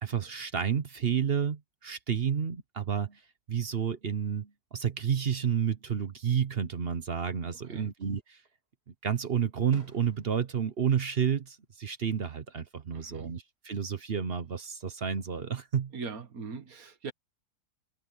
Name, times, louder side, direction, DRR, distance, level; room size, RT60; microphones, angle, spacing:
voice 1, 0.0-3.2 3.5-8.4 9.0-15.9, right 7 dB, 45° right, 1.0 m, -30 dB
Fireworks, 7.9-8.6 9.1-12.2 12.5-13.1 14.6-15.4, right 1 dB, 85° right, 6.8 m, -60 dB
voice 2, 12.9-13.3 15.9-17.1, right 4 dB, 60° right, 2.0 m, -40 dB
omnidirectional pair, 1.7 m